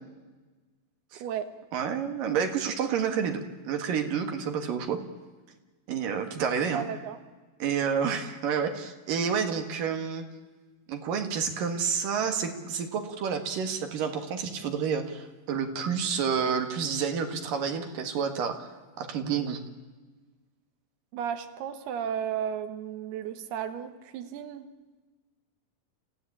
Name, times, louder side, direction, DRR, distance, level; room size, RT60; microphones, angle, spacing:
voice 1, 1.7-5.0 5.9-6.8 7.6-10.3 10.9-19.6, right 6 dB, 65° right, 6 dB, 3.3 m, -29 dB
voice 2, 6.4-7.2 21.1-24.7, right 8 dB, 80° right, 7 dB, 3.4 m, -34 dB
29.0 x 15.5 x 8.6 m, 1.3 s
omnidirectional pair, 4.5 m